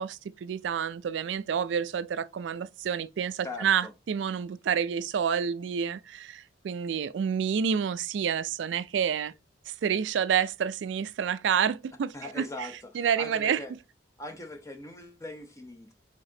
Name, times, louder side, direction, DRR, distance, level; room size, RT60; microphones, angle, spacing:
voice 1, 0.0-9.3 9.7-12.7 12.9-13.6, right 7 dB, 80° right, 0.3 m, -29 dB
voice 2, 3.4-3.9 12.1-13.7 14.2-15.9, left 2 dB, 15° left, 0.8 m, -41 dB
5.0 x 3.5 x 2.7 m
head